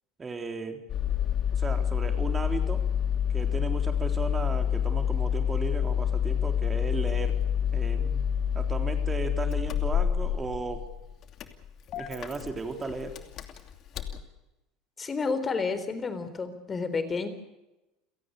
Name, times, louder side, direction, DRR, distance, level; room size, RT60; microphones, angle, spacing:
voice 1, 0.2-0.8 1.5-2.9 3.3-7.4 7.7-8.2 8.5-10.9 11.9-13.2, right 3 dB, 25° right, 6 dB, 3.6 m, -35 dB
Engine starting, 0.9-14.2, left 8 dB, 50° left, 2.8 m, -28 dB
voice 2, 15.0-17.3, left 4 dB, 25° left, 11 dB, 4.0 m, -30 dB
29.5 x 17.5 x 6.7 m, 0.98 s
hypercardioid pair, 80°, 0 cm